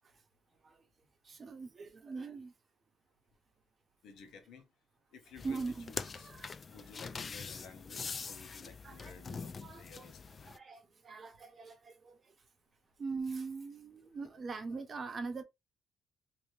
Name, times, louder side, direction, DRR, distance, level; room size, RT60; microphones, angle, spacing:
voice 1, 1.2-2.5 5.4-6.9 8.6-10.1 10.5-12.2 13.0-15.4, right 4 dB, 40° right, 0.8 m, -42 dB
voice 2, 4.0-4.7 5.1-5.6 5.9-6.3 6.7-10.5, left 5 dB, 80° left, 1.0 m, -55 dB
sound 1, 5.4-10.6, left 5 dB, 40° left, 0.3 m, -44 dB
2.7 x 2.7 x 3.2 m
cardioid pair, 90°, 0 cm